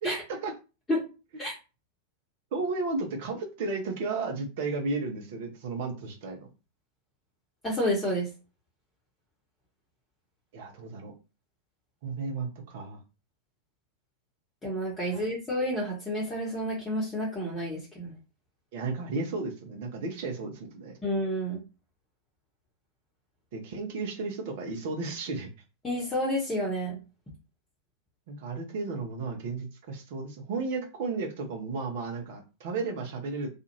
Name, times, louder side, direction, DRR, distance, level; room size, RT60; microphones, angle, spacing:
voice 1, 0.0-0.5 2.5-6.5 10.5-11.1 12.0-13.0 15.1-15.2 18.7-21.0 23.5-25.5 28.3-33.5, right 3 dB, 50° right, 2 dB, 0.8 m, -33 dB
voice 2, 7.6-8.3 14.6-18.1 21.0-21.6 25.8-27.0, equal, 15° left, -5 dB, 1.0 m, -30 dB
2.4 x 2.4 x 3.0 m, 0.30 s
figure-of-eight pair, 90°, 0 cm